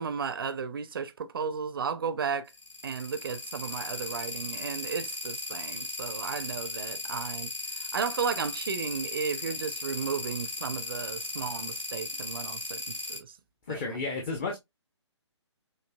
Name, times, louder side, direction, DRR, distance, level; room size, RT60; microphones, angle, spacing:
voice 1, 0.0-2.5 2.8-13.3 13.7-14.0, right 6 dB, 50° right, 0.5 m, -34 dB
sound 1, 2.5-13.2, left 2 dB, 85° left, 2.5 m, -36 dB
voice 2, 13.7-14.6, left 4 dB, 25° left, 0.8 m, -32 dB
6.5 x 2.6 x 2.2 m
figure-of-eight pair, 140°, 15 cm